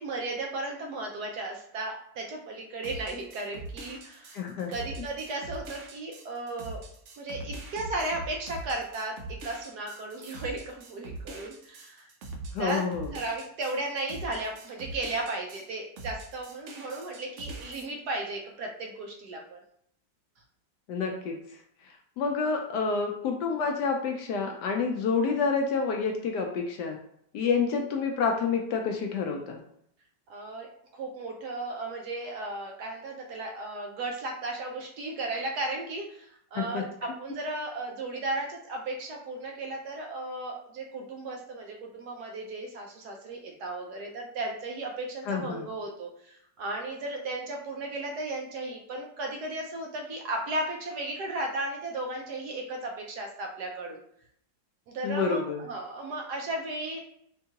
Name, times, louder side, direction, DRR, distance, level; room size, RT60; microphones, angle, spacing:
voice 1, 0.0-4.4 4.7-6.8 7.2-9.1 9.4-12.1 12.6-12.8 13.1-19.6 30.3-54.0 54.9-57.0, right 2 dB, 70° right, 1 dB, 1.0 m, -35 dB
sound 1, 2.8-15.7 16.0-17.8, right 2 dB, 85° right, 0.6 m, -42 dB
voice 2, 4.3-4.7 12.5-13.1 20.9-21.4 22.2-27.0 27.3-29.6 36.6-36.8 45.3-45.6 55.0-55.6, left 5 dB, 75° left, 3 dB, 1.0 m, -28 dB
4.5 x 2.3 x 2.8 m, 0.70 s
omnidirectional pair, 2.1 m